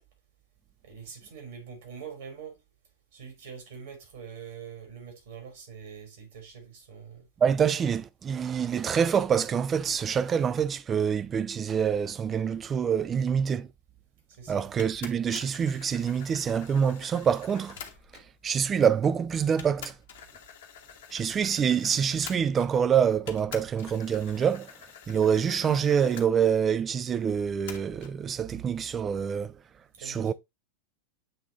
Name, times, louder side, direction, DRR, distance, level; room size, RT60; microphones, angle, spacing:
voice 1, 0.8-2.6 3.1-7.3 14.3-14.7 30.0-30.3, right 7 dB, 55° right, 3.2 m, -44 dB
voice 2, 7.4-13.7 14.5-17.8 18.4-19.9 21.1-24.7 25.1-29.6 30.0-30.3, right 7 dB, 25° right, 0.4 m, -26 dB
sound 1, 14.8-18.4 19.1-19.2 19.6-22.9 23.3-26.3 27.7-28.2, left 8 dB, 55° left, 1.2 m, -47 dB
7.7 x 3.6 x 3.8 m
figure-of-eight pair, 90°, 0 cm